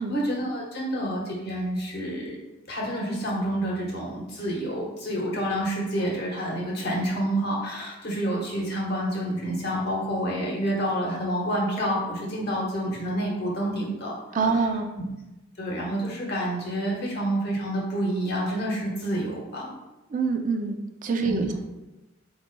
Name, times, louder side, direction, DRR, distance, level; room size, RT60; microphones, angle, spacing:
voice 1, 0.0-2.4 2.7-14.2 14.4-14.6 15.6-19.7 21.2-21.5, equal, 50° left, -3 dB, 1.1 m, -28 dB
voice 2, 14.3-14.9 20.1-21.5, right 4 dB, 40° right, 5 dB, 0.4 m, -25 dB
4.5 x 4.0 x 2.2 m, 1.0 s
head